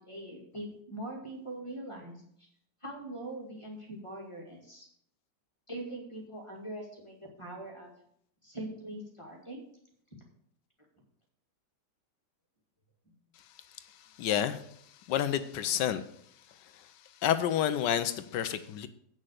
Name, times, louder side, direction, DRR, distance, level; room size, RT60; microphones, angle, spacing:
voice 1, 0.1-2.5 2.8-4.9 5.7-7.9 8.4-9.6, right 1 dB, 15° left, -1 dB, 2.2 m, -42 dB
voice 2, 14.2-14.7 15.1-16.0 16.7-16.9 17.2-18.9, left 10 dB, 85° left, 11 dB, 1.3 m, -29 dB
8.8 x 6.3 x 6.5 m, 0.67 s
omnidirectional pair, 1.9 m